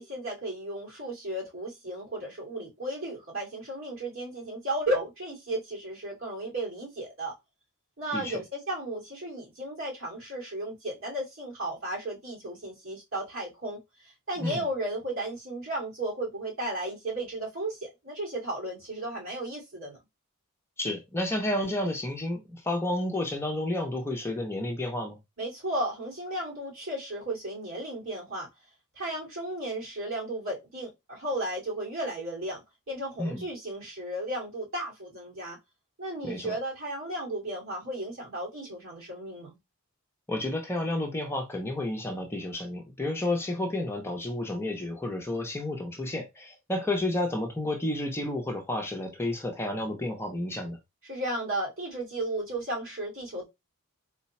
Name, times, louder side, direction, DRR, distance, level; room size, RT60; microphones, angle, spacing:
voice 1, 0.0-7.4 8.0-20.0 25.4-28.5 29.0-35.6 36.0-39.6 51.0-53.4, right 1 dB, 60° right, 2.2 m, -34 dB
voice 2, 20.8-25.2 33.2-33.4 36.2-36.6 40.3-50.8, left 1 dB, 10° left, 0.7 m, -31 dB
3.9 x 2.3 x 4.1 m
head